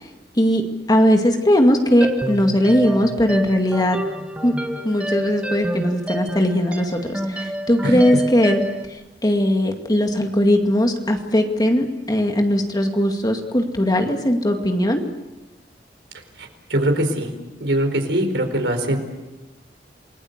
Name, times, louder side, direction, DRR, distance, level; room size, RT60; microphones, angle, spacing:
voice 1, 0.9-4.0 4.4-4.5 4.8-8.6 8.9-15.0, equal, 20° left, 4 dB, 2.3 m, -19 dB
sound 1, 2.0-8.9, right 1 dB, 5° right, 1.8 m, -28 dB
voice 2, 16.4-17.3 17.6-19.0, right 1 dB, 75° right, 6 dB, 4.5 m, -22 dB
28.5 x 21.0 x 8.2 m, 1.1 s
head